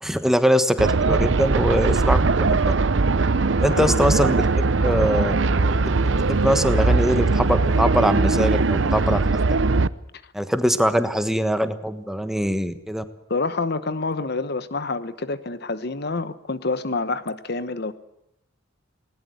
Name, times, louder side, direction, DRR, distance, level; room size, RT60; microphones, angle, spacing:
voice 1, 0.0-2.7 3.6-4.4 4.8-5.4 5.8-5.9 6.3-9.3 10.3-13.0, equal, ahead, 9 dB, 1.3 m, -22 dB
sound 1, 0.8-9.9, right 3 dB, 70° right, 0.7 m, -20 dB
sound 2, 1.7-9.1, left 1 dB, 40° left, 4.5 m, -41 dB
voice 2, 3.7-4.0 13.3-17.9, left 3 dB, 55° left, 13 dB, 1.2 m, -27 dB
20.0 x 19.0 x 7.9 m, 0.82 s
head